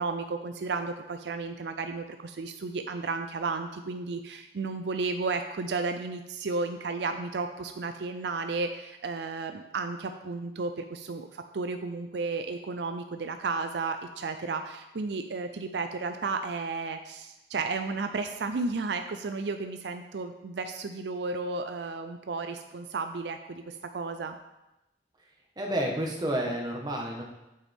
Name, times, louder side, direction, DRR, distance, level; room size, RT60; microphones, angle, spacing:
voice 1, 0.0-24.4, right 3 dB, 75° right, 7 dB, 0.5 m, -33 dB
voice 2, 25.6-27.2, right 1 dB, 25° right, 0 dB, 1.4 m, -30 dB
8.7 x 8.1 x 3.6 m, 0.96 s
head